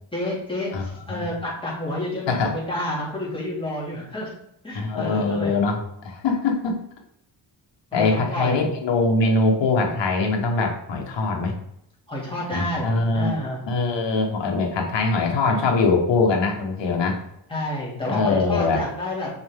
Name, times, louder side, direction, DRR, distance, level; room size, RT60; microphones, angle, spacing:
voice 1, 0.1-4.3 4.6-5.5 7.9-8.7 12.1-13.6 17.5-19.3, left 1 dB, 10° left, -6 dB, 2.8 m, -29 dB
voice 2, 0.7-1.3 2.3-2.6 4.7-6.8 7.9-11.5 12.5-13.4 13.7-17.2 18.1-18.8, left 3 dB, 70° left, 1 dB, 1.6 m, -22 dB
7.0 x 5.5 x 3.8 m, 0.76 s
wide cardioid pair, 160°, 46 cm